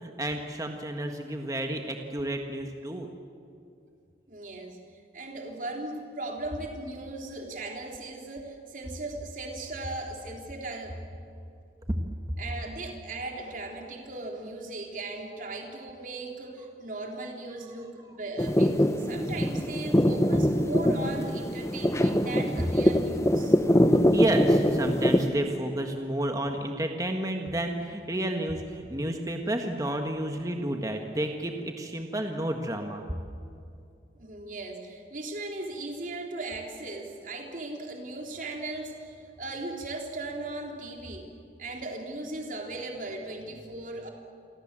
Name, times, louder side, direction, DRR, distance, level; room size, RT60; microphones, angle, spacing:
voice 1, 0.0-3.1 11.9-12.0 24.1-33.0, right 1 dB, 20° right, 4 dB, 1.6 m, -31 dB
voice 2, 4.3-11.0 12.4-23.6 34.2-41.3 41.6-44.1, right 2 dB, 50° right, 1 dB, 3.7 m, -38 dB
sound 1, 18.4-25.3, equal, 15° left, 1.1 m, -23 dB
29.0 x 24.5 x 7.6 m, 2.5 s
head